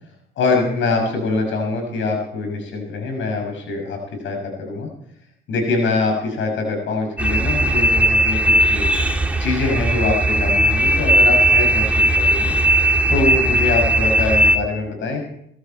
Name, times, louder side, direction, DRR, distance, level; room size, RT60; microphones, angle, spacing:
voice 1, 0.4-4.0 4.2-4.9 5.5-8.9 9.4-12.5 13.1-15.2, left 3 dB, 75° left, 2 dB, 6.4 m, -23 dB
sound 1, 7.2-14.6, right 1 dB, 5° right, 2.3 m, -17 dB
21.0 x 14.5 x 4.5 m, 0.72 s
cardioid pair, 90°, 20 cm